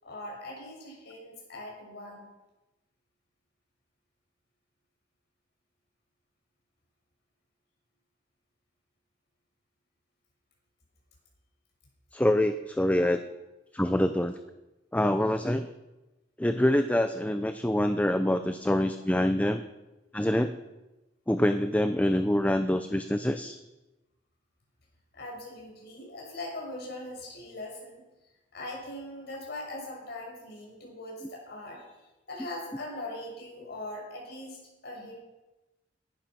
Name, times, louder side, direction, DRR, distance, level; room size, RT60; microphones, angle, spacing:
voice 1, 0.0-2.3 25.1-28.0 28.5-31.8 32.3-35.2, left 1 dB, 60° left, -1 dB, 6.4 m, -41 dB
voice 2, 12.1-13.2 13.7-14.4 14.9-15.7 16.4-19.6 20.1-20.5 21.3-23.6, left 1 dB, 10° left, 9 dB, 0.6 m, -25 dB
18.5 x 12.0 x 6.0 m, 1.0 s
head